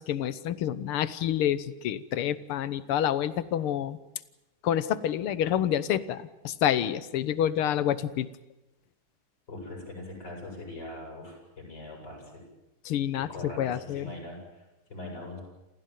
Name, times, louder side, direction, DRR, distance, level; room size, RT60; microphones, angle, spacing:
voice 1, 0.0-4.0 4.6-8.3 12.9-14.1, left 10 dB, 85° left, 16 dB, 1.9 m, -28 dB
voice 2, 9.5-12.4 13.1-15.4, left 1 dB, 50° left, 0 dB, 8.6 m, -42 dB
28.5 x 15.5 x 9.3 m, 1.0 s
omnidirectional pair, 2.3 m